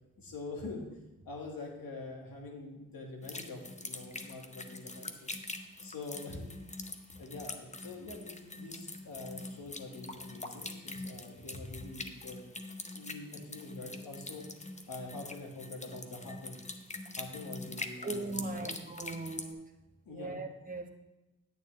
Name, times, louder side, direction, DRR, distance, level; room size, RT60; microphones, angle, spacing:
voice 1, 0.2-0.9 1.3-5.3 5.8-6.5 7.1-12.4 12.9-14.4 14.9-16.6 17.2-18.7 20.0-20.4, left 3 dB, 65° left, 0 dB, 2.0 m, -45 dB
sound 1, 3.2-19.5, left 2 dB, 20° left, 0.8 m, -44 dB
voice 2, 18.0-19.7 20.1-20.9, right 2 dB, 25° right, 3 dB, 1.1 m, -39 dB
9.1 x 8.3 x 3.3 m, 1.0 s
cardioid pair, 55°, 37 cm